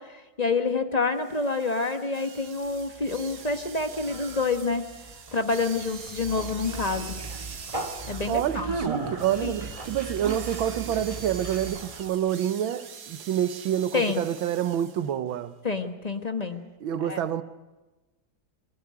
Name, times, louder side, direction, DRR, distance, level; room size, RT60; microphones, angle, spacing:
voice 1, 0.0-4.8 5.3-7.2 8.1-8.7 9.4-9.6 13.9-14.2 15.6-16.6 17.0-17.2, left 4 dB, 25° left, 1.1 m, -28 dB
sound 1, 1.2-15.1, right 6 dB, 55° right, 1.8 m, -44 dB
Conversation, 2.6-12.1, right 3 dB, 20° right, 1.7 m, -37 dB
voice 2, 8.3-15.5 16.8-17.4, right 10 dB, 85° right, 1.7 m, -28 dB
24.0 x 15.5 x 9.5 m
omnidirectional pair, 2.1 m